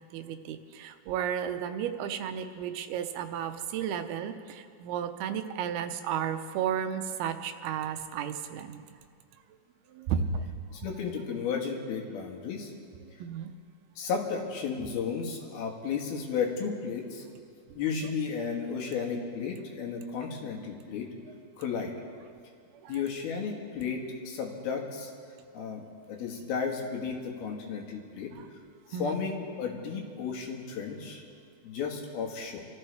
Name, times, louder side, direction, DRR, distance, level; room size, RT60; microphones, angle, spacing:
voice 1, 0.1-8.8 9.9-10.4 13.2-13.5 22.8-23.0 28.9-29.2, right 8 dB, 90° right, 8 dB, 2.8 m, -33 dB
voice 2, 10.7-12.7 14.0-17.3 17.8-21.1 21.6-21.9 22.9-25.1 25.5-28.3 28.9-31.2 31.6-32.6, left 6 dB, 80° left, 0 dB, 3.5 m, -33 dB
26.5 x 14.0 x 3.4 m, 2.2 s
omnidirectional pair, 4.3 m